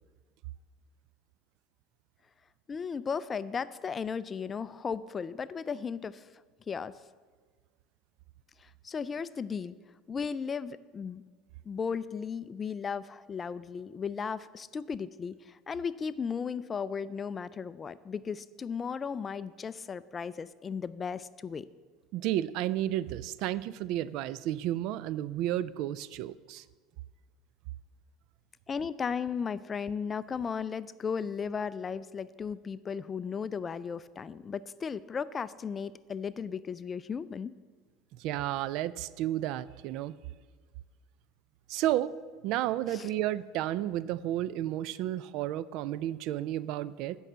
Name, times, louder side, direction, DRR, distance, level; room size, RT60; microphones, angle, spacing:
voice 1, 2.7-6.3 6.7-6.9 8.6-9.8 10.1-11.2 11.7-21.7 28.7-37.5 42.9-43.1, left 6 dB, 25° left, 17 dB, 0.3 m, -35 dB
voice 2, 22.1-26.6 38.2-40.1 41.7-42.1 42.4-47.2, right 13 dB, 65° right, 18 dB, 0.3 m, -32 dB
9.1 x 5.5 x 7.3 m, 1.5 s
supercardioid pair, 110°, 0 cm